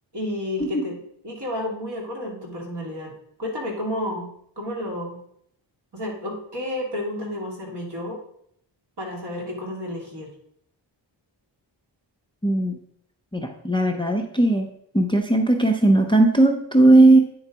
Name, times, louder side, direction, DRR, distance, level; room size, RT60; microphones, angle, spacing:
voice 1, 0.1-1.0 1.2-3.1 3.4-4.3 4.6-5.2 5.9-8.2 9.0-10.3, left 1 dB, 60° right, -2 dB, 2.4 m, -31 dB
voice 2, 12.4-12.7 13.3-14.7 14.9-17.2, right 2 dB, 10° left, 4 dB, 0.5 m, -17 dB
9.1 x 3.9 x 4.6 m, 0.71 s
wide cardioid pair, 145°, 45 cm